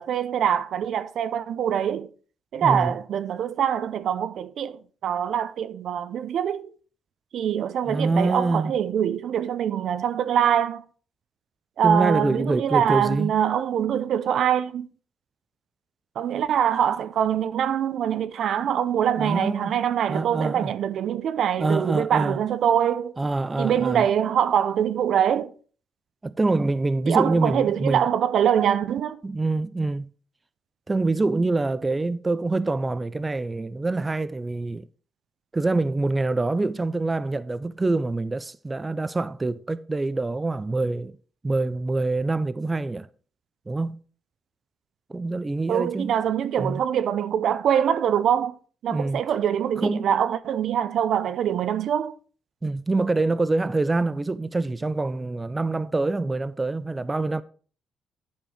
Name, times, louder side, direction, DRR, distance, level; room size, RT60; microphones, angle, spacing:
voice 1, 0.0-2.1 2.5-6.7 7.3-10.8 11.8-14.9 16.2-23.1 23.6-25.5 27.1-29.2 45.7-48.6 48.8-52.1, right 9 dB, 70° right, 0.5 m, -24 dB
voice 2, 2.6-2.9 7.9-8.7 11.8-13.3 19.2-19.7 20.1-20.7 21.6-22.4 23.2-24.1 26.2-28.0 29.2-30.1 30.9-34.9 35.5-41.2 41.4-43.1 43.7-44.0 45.1-46.2 46.6-46.8 48.9-49.2 49.8-50.1 52.6-57.4, right 3 dB, 20° right, 0.4 m, -25 dB
10.0 x 4.5 x 4.9 m
cardioid pair, 90°, 0 cm